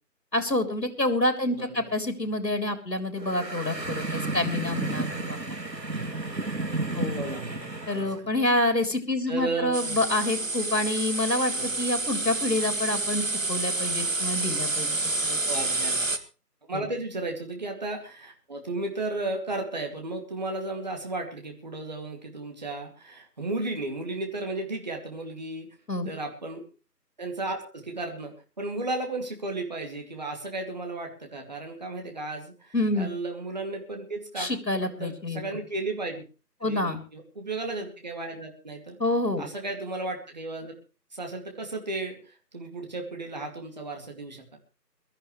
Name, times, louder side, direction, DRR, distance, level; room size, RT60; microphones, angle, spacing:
voice 1, 0.3-5.4 6.9-7.2 7.9-14.9 15.2-15.4 16.7-16.8 25.9-26.1 32.7-33.1 34.4-35.4 36.6-37.0 39.0-39.4, left 1 dB, 80° left, 6 dB, 3.5 m, -27 dB
voice 2, 1.5-1.9 5.9-6.0 7.1-8.3 9.3-10.0 11.6-11.7 15.3-16.0 16.7-25.7 26.0-26.6 27.2-34.5 34.8-36.2 36.6-39.0 39.4-40.7 41.1-44.6, right 2 dB, 25° right, 3 dB, 2.5 m, -34 dB
sound 1, 3.2-8.2, right 2 dB, 80° right, 3.0 m, -32 dB
sound 2, 9.7-16.2, right 2 dB, 50° right, 1.8 m, -29 dB
22.5 x 13.5 x 3.2 m, 0.35 s
figure-of-eight pair, 165°, 49 cm